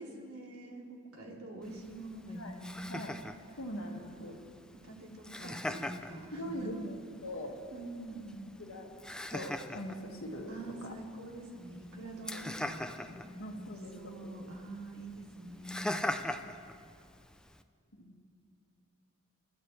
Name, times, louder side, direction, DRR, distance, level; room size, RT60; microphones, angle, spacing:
voice 1, 0.0-2.9 3.8-4.0 4.7-6.7 7.7-8.4 10.5-16.0, right 1 dB, 90° right, -2 dB, 2.7 m, -45 dB
Laughter, 1.6-17.6, left 1 dB, 5° left, 0.4 m, -43 dB
voice 2, 3.6-4.4 5.4-5.9 6.3-7.6 8.6-8.9 9.3-10.5 10.8-10.9 12.0-12.5 13.4-14.5 18.0-18.2, equal, 70° left, 1 dB, 1.9 m, -42 dB
29.0 x 13.0 x 3.3 m, 2.3 s
head